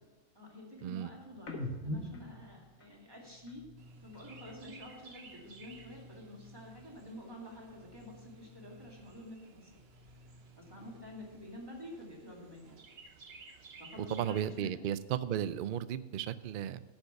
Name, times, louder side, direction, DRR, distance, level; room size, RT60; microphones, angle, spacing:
voice 1, 0.4-3.7 4.0-9.8 10.6-12.8 13.8-14.7, left 1 dB, 15° right, -2 dB, 2.2 m, -49 dB
sound 1, 1.4-5.0 5.3-7.1 7.4-9.3 9.6-11.5, left 1 dB, 90° left, 1.7 m, -47 dB
Chirp tweet, 3.8-14.6, right 4 dB, 55° right, 1.1 m, -57 dB
voice 2, 14.1-16.8, right 10 dB, 70° right, 15 dB, 0.5 m, -35 dB
10.5 x 5.4 x 6.9 m, 1.3 s
omnidirectional pair, 1.4 m